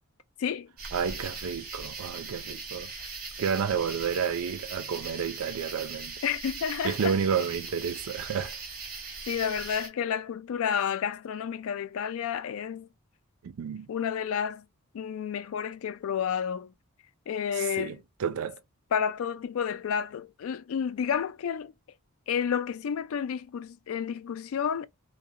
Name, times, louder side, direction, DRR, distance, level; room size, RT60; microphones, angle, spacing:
voice 1, 0.4-0.7 2.9-3.1 6.2-7.1 9.3-12.9 13.9-14.6 14.9-16.7 17.3-18.0 18.9-21.7 22.3-24.9, left 8 dB, 65° left, 0.3 m, -30 dB
sound 1, 0.8-9.9, right 4 dB, 40° right, 0.8 m, -40 dB
voice 2, 0.9-2.9 3.4-6.2 6.8-8.6 13.4-13.9 17.6-18.6, right 7 dB, 70° right, 0.4 m, -30 dB
2.4 x 2.0 x 2.7 m
head